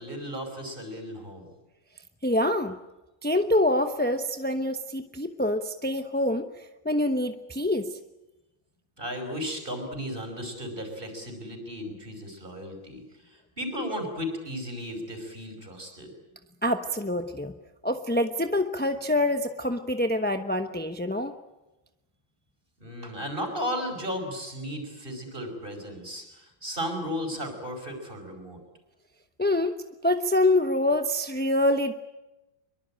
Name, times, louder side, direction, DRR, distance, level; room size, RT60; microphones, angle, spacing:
voice 1, 0.0-1.5 9.0-16.1 22.8-28.6, equal, 25° right, 5 dB, 5.7 m, -35 dB
voice 2, 2.2-2.7 3.2-8.0 16.6-17.5 17.8-21.3 29.4-29.7 30.0-31.9, left 1 dB, 10° left, 7 dB, 0.5 m, -26 dB
23.5 x 23.0 x 8.9 m, 1.0 s
omnidirectional pair, 2.1 m